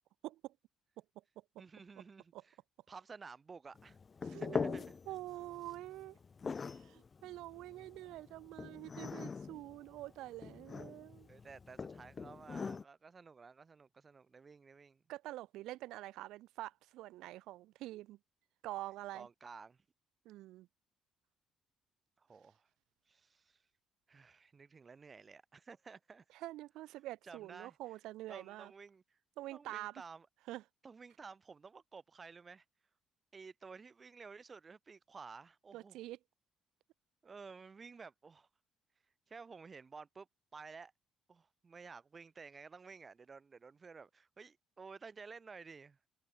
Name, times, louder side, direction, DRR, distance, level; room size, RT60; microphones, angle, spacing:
voice 1, 0.2-0.5 2.3-2.4 4.2-6.2 6.6-11.3 15.1-18.2 18.6-19.3 20.2-20.7 26.3-28.7 29.4-30.0 30.5-30.6 35.7-36.2, right 16 dB, 85° right, 3.1 m, -46 dB
voice 2, 1.6-2.6 2.9-4.0 4.3-5.0 11.3-15.0 19.1-19.8 22.2-22.7 23.1-23.6 24.1-26.2 27.2-27.8 28.3-29.2 29.5-30.3 30.8-32.6 33.3-36.0 37.2-38.5 39.3-40.9 41.3-46.0, right 5 dB, 30° right, 4.9 m, -53 dB
sound 1, 3.8-12.8, left 5 dB, 30° left, 0.9 m, -43 dB
cardioid pair, 110°, 0 cm